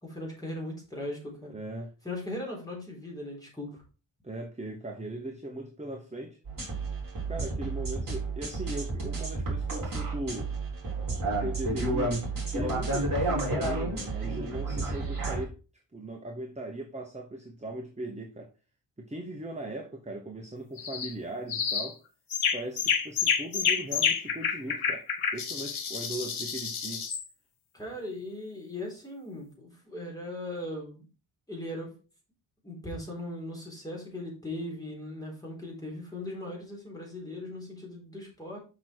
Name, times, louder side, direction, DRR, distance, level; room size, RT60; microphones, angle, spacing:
voice 1, 0.0-1.5 2.0-3.8 27.7-31.1 31.5-32.0 32.6-38.6, left 1 dB, 5° left, 3.9 m, -38 dB
voice 2, 1.5-1.9 4.2-6.4 7.3-10.5 11.4-12.2 12.5-15.6 15.9-18.5 19.0-22.0 22.5-25.1 25.3-27.0, right 1 dB, 15° right, 1.0 m, -38 dB
sound 1, 6.4-15.4, right 2 dB, 40° right, 3.5 m, -31 dB
sound 2, 20.8-21.1 21.5-21.9 22.3-27.2, left 7 dB, 70° left, 1.2 m, -29 dB
6.1 x 6.1 x 4.5 m
wide cardioid pair, 125°, 50 cm